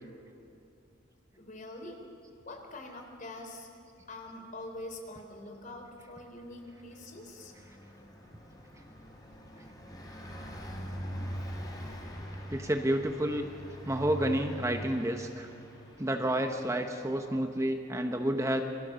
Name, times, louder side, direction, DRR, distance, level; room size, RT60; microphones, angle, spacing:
voice 1, 1.4-2.0 2.5-3.7 4.1-7.5, left 2 dB, 40° left, 4 dB, 3.8 m, -44 dB
Car passing by, 5.8-16.9, equal, 20° left, 4.0 m, -43 dB
voice 2, 12.5-13.5 13.8-15.5 16.0-18.6, right 1 dB, 15° right, 4 dB, 1.1 m, -30 dB
28.5 x 23.5 x 7.0 m, 2.6 s
head